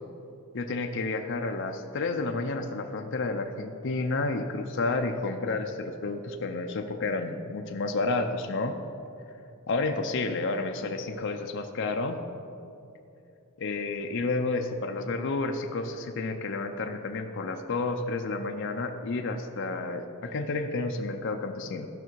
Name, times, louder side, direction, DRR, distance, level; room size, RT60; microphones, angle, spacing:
voice 1, 0.5-8.8 9.7-12.2 13.6-21.9, left 3 dB, 55° left, 4 dB, 0.6 m, -30 dB
15.5 x 5.8 x 4.6 m, 2.7 s
head